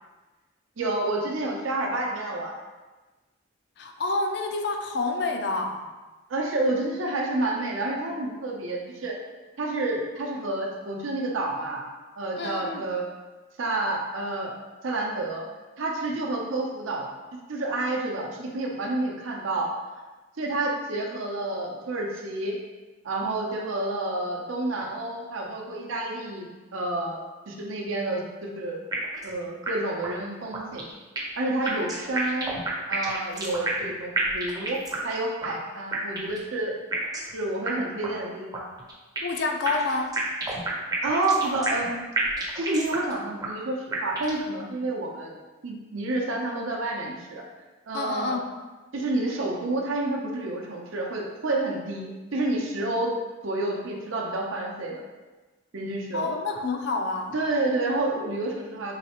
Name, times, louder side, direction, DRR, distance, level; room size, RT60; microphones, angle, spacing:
voice 1, 0.8-2.6 6.3-9.2 9.6-11.8 12.2-13.0 13.6-14.5 14.8-15.4 15.8-17.1 17.5-19.7 20.4-22.6 23.0-26.5 26.7-27.2 27.5-28.8 29.2-30.9 31.4-32.5 32.9-34.8 35.0-36.7 37.3-38.6 41.0-42.0 42.5-45.3 45.6-47.4 47.9-48.4 48.9-53.1 53.4-55.0 55.7-56.3 57.3-59.0, right 2 dB, 80° right, 0 dB, 0.7 m, -29 dB
voice 2, 3.8-5.8 12.4-12.9 39.2-40.2 47.9-48.5 56.1-57.3, left 3 dB, 55° left, 4 dB, 0.4 m, -28 dB
sound 1, 28.9-29.3 29.7-29.8 30.0-30.1 30.5-31.4 31.7-33.9 34.2-35.1 35.4-35.5 35.9-36.4 36.9-37.3 37.7-37.8 38.0-38.1 38.5-39.4 39.7-41.9 42.2-43.1 43.4-43.5 43.9-44.4, right 2 dB, 20° right, 0.5 m, -30 dB
4.0 x 3.2 x 2.9 m, 1.2 s
head